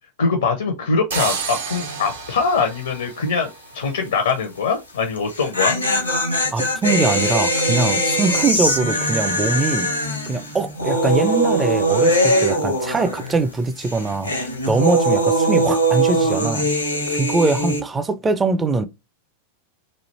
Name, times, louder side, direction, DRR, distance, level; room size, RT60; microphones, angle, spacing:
voice 1, 0.2-5.8, left 5 dB, 65° left, 0.6 m, -22 dB
sound 1, 1.1-4.0, right 5 dB, 60° right, 0.7 m, -30 dB
sound 2, 1.8-2.2 2.4-2.5 5.2-13.5 13.8-17.8, right 1 dB, 85° left, 0.9 m, -21 dB
voice 2, 6.5-9.9 10.3-16.7 17.1-18.9, right 3 dB, 15° right, 0.4 m, -22 dB
3.1 x 2.4 x 4.1 m
figure-of-eight pair, 90°, 0 cm